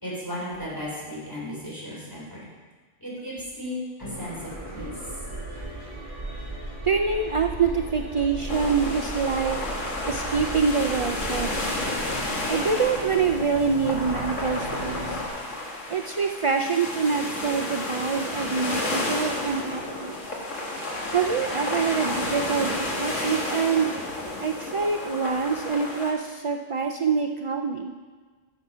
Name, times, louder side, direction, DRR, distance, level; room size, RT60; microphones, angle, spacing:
voice 1, 0.0-2.5 3.0-4.4 4.7-4.9, left 1 dB, 15° left, -6 dB, 3.9 m, -35 dB
sound 1, 4.0-15.3, right 1 dB, 30° right, 3.7 m, -36 dB
voice 2, 6.8-9.6 10.1-11.7 12.5-15.2 15.9-20.2 21.1-23.9 24.4-27.9, right 5 dB, 60° right, 3 dB, 0.3 m, -25 dB
sound 2, 8.5-26.1, left 2 dB, 80° left, 2.0 m, -31 dB
12.5 x 7.2 x 5.5 m, 1.4 s
omnidirectional pair, 1.2 m